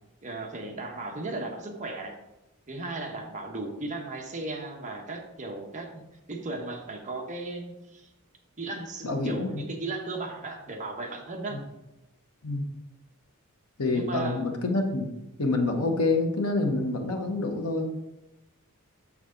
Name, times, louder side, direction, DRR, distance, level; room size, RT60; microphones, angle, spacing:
voice 1, 0.2-2.2 2.7-8.1 8.6-11.6 13.9-14.4, right 2 dB, 35° right, 2 dB, 1.1 m, -36 dB
voice 2, 9.0-9.7 11.5-11.6 12.4-12.7 13.8-15.1 15.4-17.9, left 2 dB, 85° left, 2 dB, 1.0 m, -27 dB
6.9 x 6.1 x 3.8 m, 0.96 s
head